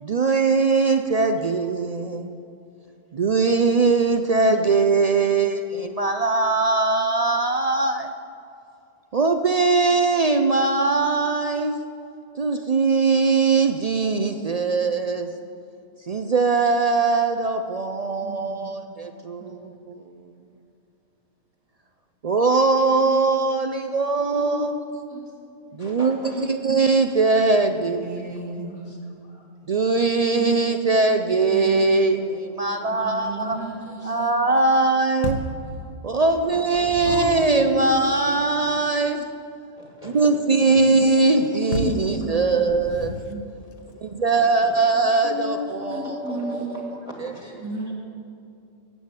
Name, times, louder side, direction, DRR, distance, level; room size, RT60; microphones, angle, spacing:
voice 1, 0.0-2.4 3.1-8.1 9.1-11.8 12.4-15.3 16.1-20.0 22.2-24.7 25.7-28.7 29.7-33.6 34.0-35.4 36.0-39.3 40.0-43.2 44.0-46.9 47.2-47.3, right 3 dB, 70° right, 7 dB, 0.3 m, -21 dB
voice 2, 14.2-14.6 14.8-15.1 18.2-18.8 19.4-19.5 23.0-23.2 24.3-25.2 27.4-28.8 30.4-31.2 31.5-32.2 33.0-34.5 35.5-35.9 37.0-38.1 38.7-39.4 40.6-42.4 42.7-42.8 43.3-43.4 45.0-46.9 47.6-47.9, equal, 15° right, -2 dB, 1.7 m, -33 dB
voice 3, 25.8-26.5 28.7-29.5 32.5-34.3 36.2-37.8 38.3-38.4 38.7-38.8 39.8-40.8 41.1-41.6 42.2-42.6 43.5-44.7 46.2-47.6 47.9-48.0, equal, 25° left, 0 dB, 1.6 m, -43 dB
sound 1, 35.2-35.6 36.5-37.6 41.7-42.1 42.7-43.4, left 2 dB, 80° left, 1.3 m, -31 dB
13.0 x 8.6 x 8.2 m, 2.6 s
omnidirectional pair, 1.4 m